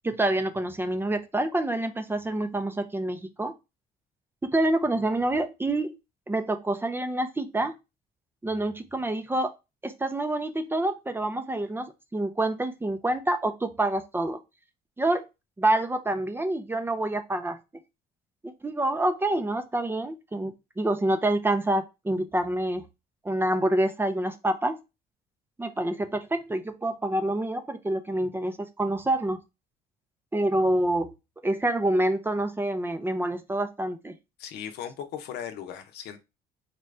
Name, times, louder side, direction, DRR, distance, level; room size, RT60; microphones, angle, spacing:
voice 1, 0.0-3.5 4.4-6.0 6.3-7.7 8.4-9.5 9.8-14.4 15.0-15.2 15.6-17.6 18.4-22.8 23.2-24.7 25.6-29.4 30.3-31.1 31.4-34.1, right 1 dB, 15° right, 0.5 m, -27 dB
voice 2, 34.4-36.2, left 9 dB, 75° left, 0.8 m, -37 dB
4.3 x 2.5 x 3.2 m
cardioid pair, 110°, 17 cm